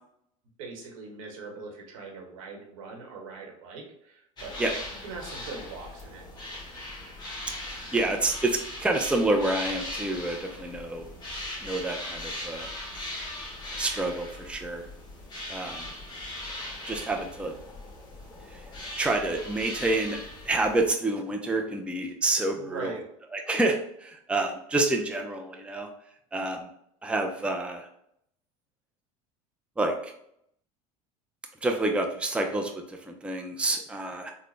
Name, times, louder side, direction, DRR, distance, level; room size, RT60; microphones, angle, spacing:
voice 1, 0.6-4.6 5.0-6.2 22.5-23.0, right 4 dB, 80° right, 0 dB, 1.1 m, -41 dB
sound 1, 4.4-20.9, left 1 dB, 25° left, 1.2 m, -39 dB
voice 2, 7.6-11.1 11.6-12.7 13.8-14.9 15.5-15.9 16.9-17.5 18.5-18.6 19.0-20.2 20.5-23.0 23.3-25.9 26.3-26.7 27.0-27.9 29.8-30.1 31.6-34.3, right 2 dB, 5° right, 3 dB, 0.5 m, -28 dB
3.9 x 2.1 x 3.2 m, 0.73 s
hypercardioid pair, 90°, 17 cm